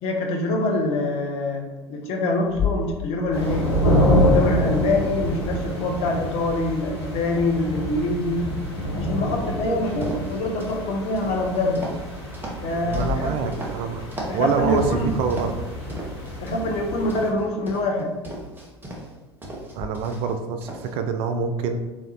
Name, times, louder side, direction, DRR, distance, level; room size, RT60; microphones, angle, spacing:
voice 1, 0.0-3.8 4.1-8.5 8.9-11.9 12.6-13.5 14.3-15.1 16.4-18.2, left 2 dB, 45° left, 0 dB, 1.0 m, -25 dB
sound 1, 2.4-6.0 10.4-10.5 11.4-11.5 12.8-14.1 19.7-19.9, left 7 dB, 25° left, 0.4 m, -33 dB
sound 2, 3.3-17.3, equal, 70° left, 1.1 m, -26 dB
sound 3, 9.8-10.8 11.2-13.7 14.1-14.4 14.7-15.6 15.9-16.7 17.1-19.1 19.4-20.4 20.6-20.9, right 1 dB, 15° right, 1.1 m, -35 dB
voice 2, 12.7-14.0 14.3-15.6 19.7-21.8, right 6 dB, 45° right, 7 dB, 0.4 m, -26 dB
3.8 x 3.1 x 4.1 m, 1.2 s
figure-of-eight pair, 75°, 14 cm